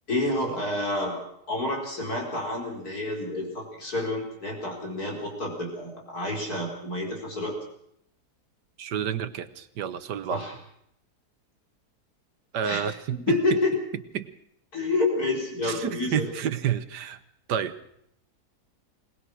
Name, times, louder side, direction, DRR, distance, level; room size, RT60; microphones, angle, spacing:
voice 1, 0.1-1.2 1.5-7.6 10.3-10.5 12.6-12.8 13.1-13.8 14.7-16.3, left 2 dB, 65° left, 0 dB, 5.0 m, -29 dB
voice 2, 8.8-10.4 12.5-13.6 14.1-14.3 15.6-17.2 17.5-17.8, right 9 dB, 85° right, 12 dB, 1.7 m, -29 dB
21.5 x 19.5 x 6.3 m, 0.73 s
omnidirectional pair, 1.7 m